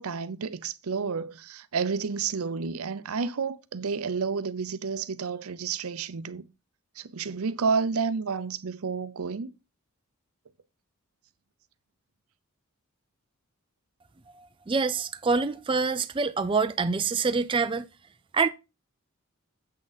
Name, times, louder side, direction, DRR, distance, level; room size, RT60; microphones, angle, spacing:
voice 1, 0.0-6.5 7.0-9.5, right 5 dB, 85° right, 0.6 m, -30 dB
voice 2, 14.4-17.9 18.3-18.5, right 4 dB, 25° right, 0.4 m, -26 dB
7.5 x 6.2 x 4.1 m
head